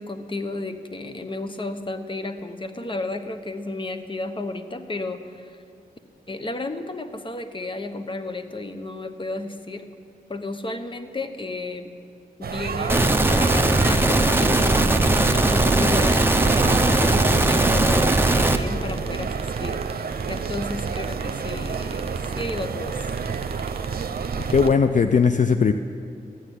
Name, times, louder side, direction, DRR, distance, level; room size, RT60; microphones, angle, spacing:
voice 1, 0.0-5.6 6.3-9.9 10.3-11.9 12.4-16.4 16.7-23.1, left 2 dB, 30° left, 9 dB, 1.1 m, -33 dB
sound 1, 12.4-24.7, right 6 dB, 75° right, 0.8 m, -31 dB
sound 2, 12.9-18.6, right 2 dB, 15° right, 0.9 m, -19 dB
sound 3, 14.3-24.8, right 4 dB, 40° right, 0.8 m, -33 dB
voice 2, 24.5-25.7, left 5 dB, 55° left, 8 dB, 0.6 m, -18 dB
14.5 x 9.2 x 9.9 m, 2.4 s
cardioid pair, 70°, 16 cm